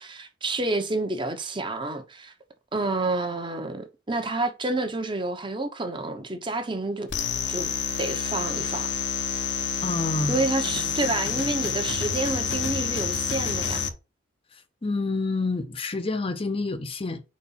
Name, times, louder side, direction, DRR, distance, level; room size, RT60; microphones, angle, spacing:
voice 1, 0.0-2.3 2.7-7.1 7.5-7.7 8.0-8.9 10.3-13.8, right 2 dB, 25° right, 0.9 m, -29 dB
sound 1, 7.1-13.9, left 7 dB, 65° left, 0.9 m, -28 dB
voice 2, 9.8-10.4 14.8-17.2, left 3 dB, 30° left, 0.6 m, -28 dB
4.6 x 4.3 x 5.6 m
head